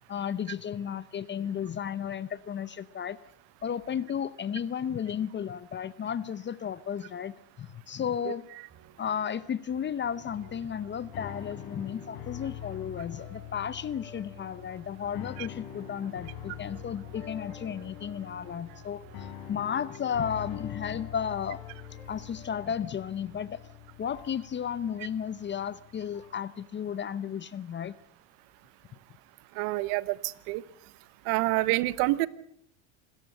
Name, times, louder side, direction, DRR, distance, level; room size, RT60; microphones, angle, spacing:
voice 1, 0.1-3.2 3.6-8.5 9.0-21.6 22.1-23.6 24.0-28.0, left 8 dB, 25° left, 17 dB, 0.8 m, -34 dB
sound 1, 8.7-21.2, right 7 dB, 30° right, 3.4 m, -56 dB
sound 2, 10.2-26.5, left 11 dB, 65° left, 5.3 m, -44 dB
voice 2, 29.6-30.6 31.2-32.3, right 20 dB, 65° right, 18 dB, 1.1 m, -27 dB
27.0 x 14.0 x 7.8 m, 0.70 s
supercardioid pair, 105°, 42 cm